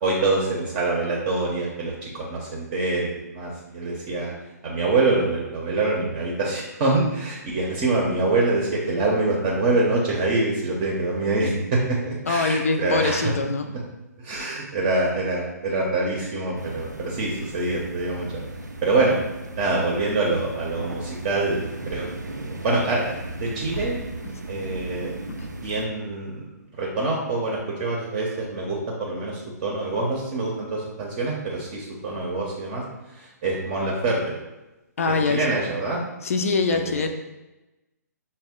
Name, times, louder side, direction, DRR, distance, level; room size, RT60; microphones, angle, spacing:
voice 1, 0.0-4.3 4.6-13.3 14.2-18.3 18.8-19.2 19.6-23.1 23.4-24.0 24.5-25.1 25.6-26.4 26.8-32.8 33.1-34.4 35.1-36.0 36.7-37.0, right 2 dB, 30° right, -3 dB, 0.7 m, -25 dB
voice 2, 12.3-13.8 35.0-35.6 36.2-37.1, left 4 dB, 55° left, 6 dB, 0.5 m, -23 dB
sound 1, 16.6-25.9, right 2 dB, 85° right, 0.4 m, -36 dB
5.3 x 2.2 x 3.6 m, 1.0 s
figure-of-eight pair, 130°, 9 cm